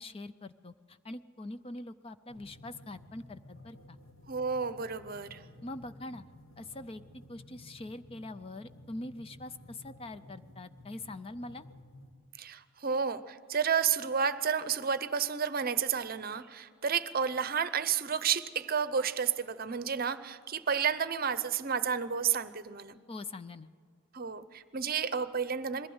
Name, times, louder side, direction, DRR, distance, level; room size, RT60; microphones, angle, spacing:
voice 1, 0.0-4.0 5.6-6.2 6.6-11.6 23.1-23.7, left 2 dB, 25° left, 12 dB, 0.4 m, -43 dB
sound 1, 2.3-12.1, left 1 dB, 65° left, 2.1 m, -54 dB
voice 2, 4.3-5.4 12.4-23.0 24.1-25.9, right 7 dB, 40° right, 14 dB, 0.7 m, -31 dB
22.0 x 15.5 x 7.9 m, 2.2 s
head